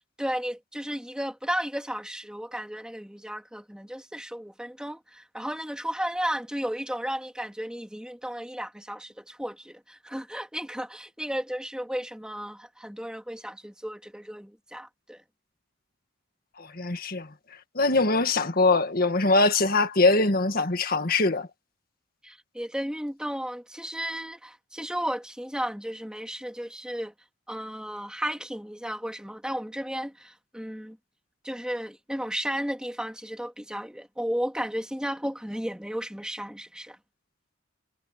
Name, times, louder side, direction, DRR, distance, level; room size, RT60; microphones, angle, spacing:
voice 1, 0.2-15.2 22.2-27.1 27.5-31.0 31.4-37.0, equal, 5° right, 2.7 m, -34 dB
voice 2, 16.6-17.3 17.8-21.5, left 3 dB, 45° left, 1.8 m, -22 dB
head